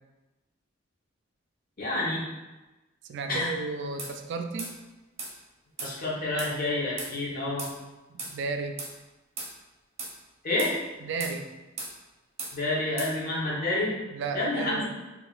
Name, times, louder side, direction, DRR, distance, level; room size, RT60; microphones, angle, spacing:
voice 1, 1.8-2.2 3.3-3.5 5.8-7.7 10.4-10.8 12.5-13.9 14.3-14.8, left 2 dB, 50° left, -5 dB, 1.0 m, -28 dB
voice 2, 3.1-4.8 8.1-8.8 11.0-11.5 14.1-14.8, right 4 dB, 65° right, 5 dB, 0.3 m, -33 dB
sound 1, 4.0-4.1 4.6-4.7 5.2-5.3 5.8-5.9 6.4-6.5 7.0-7.1 7.6-7.7 8.2-8.3 8.8-8.9 9.4-9.5 10.0-10.1 10.6-10.7 11.2-11.4 11.8-11.9 12.4-12.5 13.0-13.1, right 3 dB, 35° right, 0.7 m, -36 dB
4.7 x 2.4 x 2.4 m, 1.1 s
head